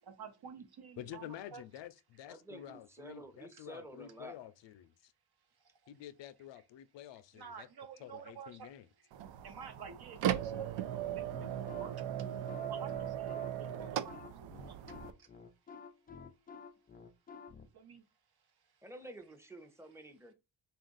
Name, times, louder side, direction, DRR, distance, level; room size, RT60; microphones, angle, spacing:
voice 1, 0.0-1.6 3.5-3.6 5.6-5.8 7.3-8.7 9.4-15.3 15.7-15.8 17.7-18.0 18.6-18.7, right 6 dB, 55° right, 1.0 m, -51 dB
voice 2, 1.0-5.1 5.9-7.7 8.0-8.9, left 11 dB, 70° left, 0.5 m, -49 dB
voice 3, 2.3-4.4 18.8-20.3, right 1 dB, 5° right, 0.8 m, -50 dB
sound 1, 9.1-15.1, right 10 dB, 80° right, 0.5 m, -38 dB
sound 2, 11.1-17.7, left 5 dB, 20° left, 0.3 m, -51 dB
3.9 x 2.5 x 3.9 m
cardioid pair, 85°, 45 cm